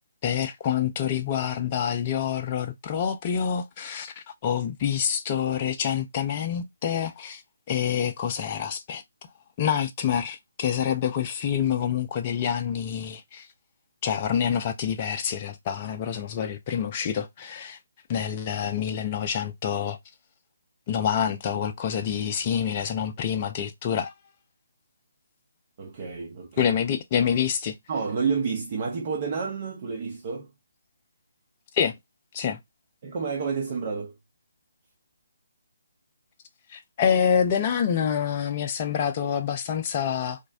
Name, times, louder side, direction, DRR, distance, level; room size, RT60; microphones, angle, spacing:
voice 1, 0.2-7.4 7.7-9.0 9.6-13.5 14.0-17.8 18.1-20.0 20.9-24.1 26.6-27.8 31.7-32.0 32.3-32.6 36.7-40.4, left 8 dB, 30° left, 0.4 m, -27 dB
voice 2, 25.8-26.7 27.9-30.5 33.0-34.1, right 5 dB, 40° right, 0.6 m, -30 dB
2.5 x 2.0 x 2.4 m
figure-of-eight pair, 145°, 0 cm